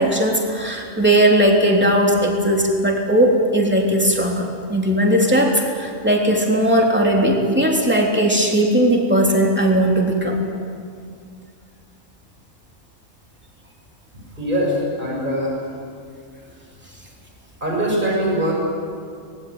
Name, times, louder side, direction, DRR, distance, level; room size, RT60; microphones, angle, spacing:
voice 1, 0.0-10.4, right 1 dB, 10° right, 0 dB, 3.4 m, -18 dB
voice 2, 14.3-15.7 16.5-16.6 17.6-18.5, equal, 35° right, -2 dB, 6.7 m, -22 dB
24.0 x 20.5 x 9.7 m, 2.2 s
omnidirectional pair, 1.4 m